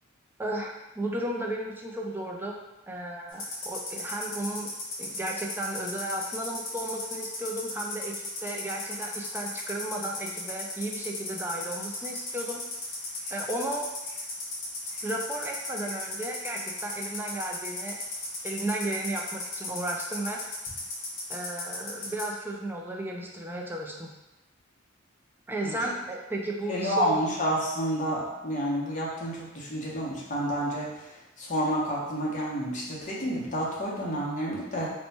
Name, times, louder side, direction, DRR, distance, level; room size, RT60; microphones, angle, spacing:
voice 1, 0.4-2.6 2.9-4.7 5.0-12.6 13.3-13.9 15.0-18.0 18.4-20.4 21.3-24.1 25.5-27.2, right 1 dB, 10° right, 0 dB, 0.3 m, -34 dB
sound 1, 3.3-22.3, left 3 dB, 65° left, 1.1 m, -36 dB
voice 2, 26.7-30.9 31.4-34.9, equal, 40° left, -5 dB, 0.8 m, -29 dB
2.9 x 2.2 x 4.1 m, 0.99 s
head